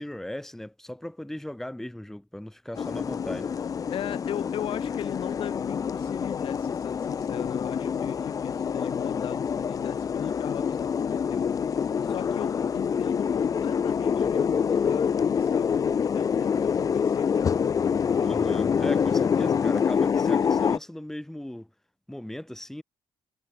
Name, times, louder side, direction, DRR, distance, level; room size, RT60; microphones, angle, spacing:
voice 1, 0.0-3.5 18.2-21.7 22.1-22.8, left 1 dB, 5° left, 2.0 m, -37 dB
sound 1, 2.7-20.8, left 7 dB, 35° left, 0.9 m, -26 dB
voice 2, 3.9-11.5 12.1-17.6, left 11 dB, 65° left, 1.7 m, -38 dB
cardioid pair, 125°, 10 cm